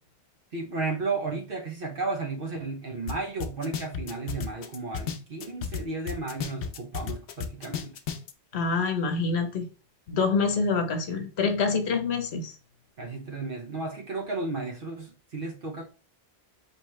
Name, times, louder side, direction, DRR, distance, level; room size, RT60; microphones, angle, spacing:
voice 1, 0.5-8.0 13.0-15.9, right 3 dB, 60° right, 1.0 m, -33 dB
sound 1, 3.1-3.2 3.4-5.8 6.1-8.3, left 8 dB, 70° left, 0.8 m, -33 dB
voice 2, 8.5-9.7 10.1-12.5, left 4 dB, 85° left, 1.2 m, -26 dB
4.5 x 3.1 x 3.1 m
omnidirectional pair, 1.1 m